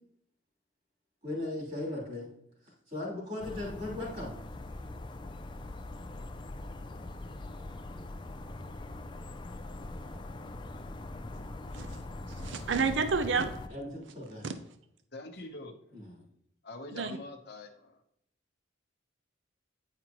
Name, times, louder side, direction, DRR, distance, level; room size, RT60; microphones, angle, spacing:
voice 1, 1.2-2.3 2.6-4.3 13.7-14.5 15.9-16.3, left 2 dB, 35° right, -3 dB, 2.9 m, -38 dB
sound 1, 3.4-13.7, left 2 dB, 25° left, 0.4 m, -42 dB
voice 2, 12.3-13.5 14.4-14.6 16.9-17.1, right 5 dB, 65° right, 9 dB, 0.5 m, -30 dB
voice 3, 15.1-16.1 16.6-18.0, left 2 dB, 55° left, 5 dB, 0.9 m, -45 dB
9.6 x 5.0 x 3.0 m, 0.75 s
head